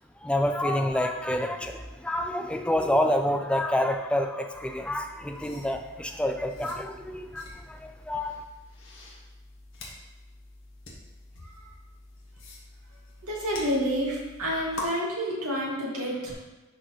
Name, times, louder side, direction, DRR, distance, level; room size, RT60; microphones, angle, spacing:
voice 1, 0.2-8.4, left 1 dB, 5° left, 5 dB, 0.4 m, -28 dB
sound 1, 4.5-14.9, left 2 dB, 60° left, 1.4 m, -45 dB
voice 2, 13.2-16.3, equal, 85° right, -4 dB, 2.2 m, -29 dB
11.0 x 4.2 x 3.1 m, 1.2 s
head